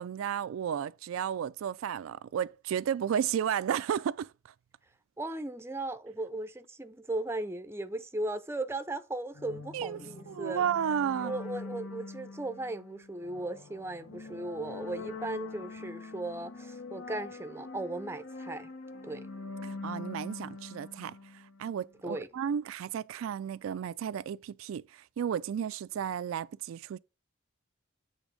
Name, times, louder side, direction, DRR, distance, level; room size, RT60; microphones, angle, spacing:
voice 1, 0.0-4.3 9.7-10.0 10.3-11.3 19.6-27.0, right 8 dB, 90° right, 0.3 m, -33 dB
voice 2, 5.2-10.7 11.2-18.7 19.0-19.3 22.0-22.3, right 2 dB, 10° right, 0.4 m, -37 dB
sound 1, 9.3-21.8, left 3 dB, 85° left, 1.3 m, -44 dB
8.1 x 3.5 x 5.0 m
head